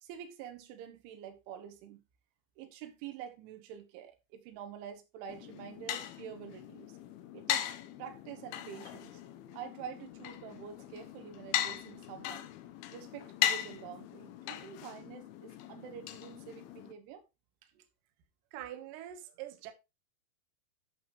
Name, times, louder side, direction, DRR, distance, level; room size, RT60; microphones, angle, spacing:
voice 1, 0.0-2.0 2.6-6.9 7.3-7.7 8.0-9.2 9.5-12.5 12.9-17.3, right 8 dB, 90° right, 3.6 m, -47 dB
sound 1, 5.3-16.9, left 11 dB, 85° left, 2.2 m, -38 dB
voice 2, 18.5-19.7, right 12 dB, 70° right, 2.0 m, -44 dB
11.0 x 6.0 x 3.0 m
omnidirectional pair, 5.3 m